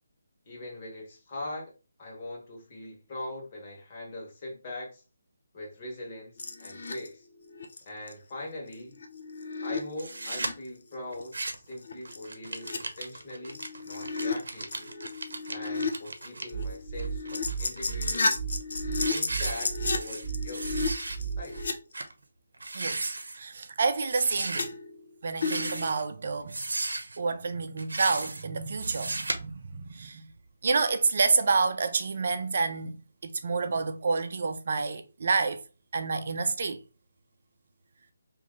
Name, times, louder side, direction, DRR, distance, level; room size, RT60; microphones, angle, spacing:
voice 1, 0.5-1.7 2.0-5.0 5.5-7.3 7.8-9.0 9.6-14.9 15.5-18.4 19.1-20.9 21.4-21.6, left 1 dB, 30° left, 1.3 m, -41 dB
sound 1, 6.4-7.1 7.5-7.8 8.1-8.2 8.7-10.5 11.1-11.3 11.5-11.6 11.9-14.4 14.7-15.9 16.2-21.7 24.6-25.1 25.4-25.9, left 4 dB, 60° left, 0.6 m, -33 dB
sound 2, 10.0-10.5 11.1-11.7 12.0-16.4 17.0-18.2 18.6-18.8 19.0-20.3 20.5-21.2 21.5-21.6 21.9-22.1 22.5-23.4 24.1-24.6 25.3-26.0 26.5-27.2 27.8-28.4 28.8-29.4, right 2 dB, 80° right, 0.8 m, -35 dB
sound 3, 16.5-21.7, right 7 dB, 10° right, 0.9 m, -34 dB
voice 2, 23.4-24.7 25.2-26.6 27.2-30.3 30.6-32.9 33.2-35.6 35.9-36.8, right 4 dB, 50° right, 0.5 m, -28 dB
3.0 x 2.7 x 3.7 m
hypercardioid pair, 165°, 0 cm